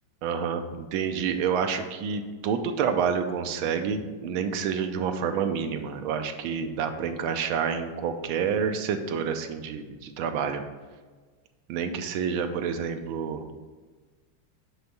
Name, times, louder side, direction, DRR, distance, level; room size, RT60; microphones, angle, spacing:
voice 1, 0.2-10.6 11.7-13.4, right 6 dB, 80° right, 7 dB, 1.4 m, -28 dB
8.1 x 3.4 x 5.4 m, 1.4 s
omnidirectional pair, 2.3 m